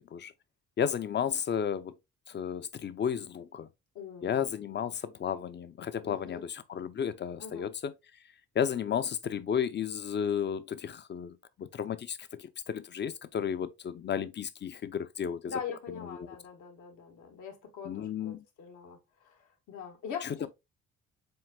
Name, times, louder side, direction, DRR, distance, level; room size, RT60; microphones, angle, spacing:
voice 1, 0.8-2.0 2.3-3.7 4.2-7.9 8.6-15.5 17.8-18.4 20.2-20.5, left 8 dB, 35° left, 0.5 m, -33 dB
voice 2, 3.9-4.5 6.0-6.4 7.4-7.7 15.5-20.5, left 6 dB, 75° left, 1.3 m, -42 dB
7.6 x 2.6 x 2.2 m
cardioid pair, 90°, 30 cm